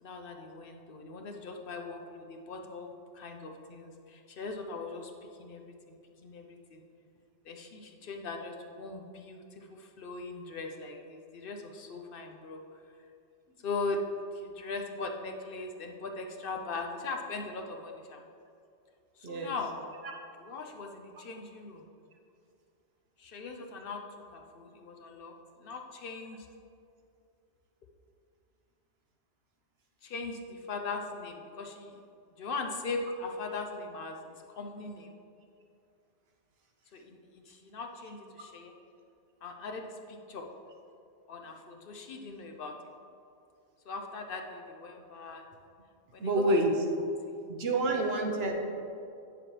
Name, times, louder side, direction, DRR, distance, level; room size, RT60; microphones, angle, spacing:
voice 1, 0.0-5.1 5.4-5.8 6.2-6.8 7.5-12.6 13.6-14.0 14.3-18.2 19.2-19.7 20.4-21.8 23.2-24.0 24.3-25.3 25.6-26.5 30.0-31.9 32.4-34.2 34.6-35.2 36.9-38.7 39.4-40.5 41.3-42.7 43.9-45.4 46.1-46.5 47.3-47.4, left 3 dB, 60° left, 3 dB, 0.7 m, -40 dB
voice 2, 46.2-46.7 47.5-48.5, right 2 dB, 65° right, 2 dB, 1.1 m, -28 dB
9.0 x 6.8 x 3.2 m, 2.5 s
omnidirectional pair, 1.2 m